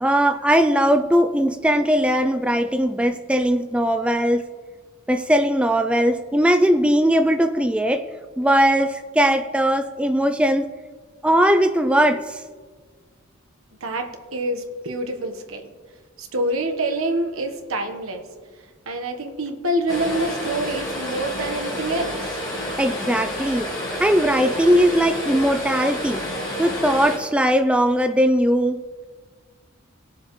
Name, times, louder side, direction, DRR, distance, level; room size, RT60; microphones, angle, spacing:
voice 1, 0.0-4.4 5.1-8.0 8.4-10.7 11.2-12.4 22.8-23.7 24.0-26.2 26.6-28.8, equal, 5° right, 7 dB, 0.3 m, -19 dB
voice 2, 13.8-15.7 16.2-18.2 18.9-22.4, right 1 dB, 75° right, 5 dB, 1.3 m, -26 dB
sound 1, 19.9-27.2, equal, 20° left, 2.9 m, -29 dB
20.0 x 7.3 x 3.2 m, 1.5 s
head